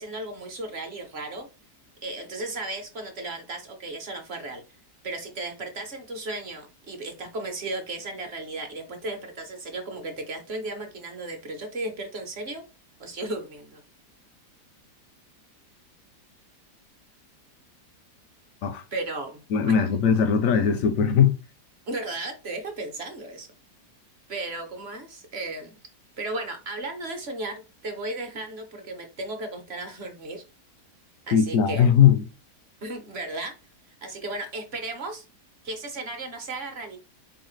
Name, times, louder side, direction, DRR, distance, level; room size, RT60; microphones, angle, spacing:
voice 1, 0.0-1.5 2.0-4.6 5.0-12.6 13.0-13.8 18.9-19.7 21.9-23.5 24.3-25.7 26.2-30.4 31.3-31.9 32.8-33.5 34.0-35.2 35.6-37.0, right 2 dB, 45° right, 1.0 m, -35 dB
voice 2, 19.5-21.4 31.3-32.2, left 7 dB, 70° left, 0.8 m, -19 dB
4.3 x 3.9 x 3.1 m
omnidirectional pair, 1.8 m